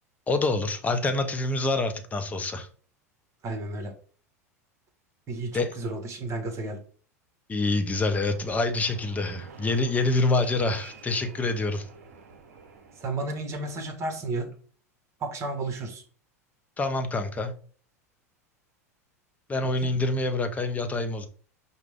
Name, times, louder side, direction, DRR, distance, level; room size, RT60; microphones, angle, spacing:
voice 1, 0.3-2.7 5.5-5.7 7.5-11.8 16.8-17.5 19.5-21.3, left 2 dB, 15° left, 0.6 m, -26 dB
voice 2, 3.4-3.9 5.3-6.8 13.0-14.5 15.2-16.0, right 2 dB, 35° right, 1.2 m, -32 dB
Fixed-wing aircraft airplane, 7.9-13.5, right 4 dB, 65° right, 0.7 m, -49 dB
4.9 x 2.2 x 3.4 m
figure-of-eight pair, 80°, 9 cm